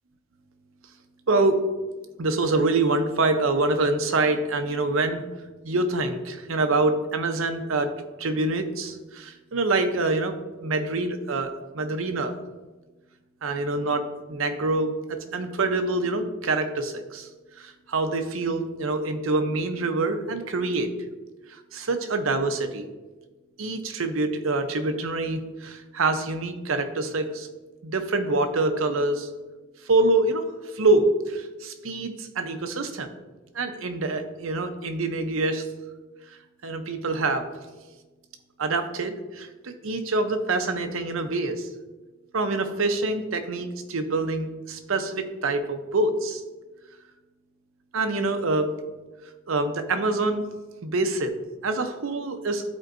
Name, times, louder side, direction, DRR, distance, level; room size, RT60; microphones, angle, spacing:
voice 1, 1.3-1.6 2.2-5.2 5.6-7.9 8.2-12.4 13.4-17.3 17.6-20.9 21.5-22.8 23.6-27.5 27.8-29.3 29.9-30.4 30.7-33.1 33.5-35.7 36.6-37.5 38.6-41.7 42.3-46.4 47.9-48.7 49.5-50.5 50.8-52.8, right 2 dB, 85° right, 7 dB, 0.7 m, -26 dB
12.0 x 4.5 x 2.6 m, 1.2 s
head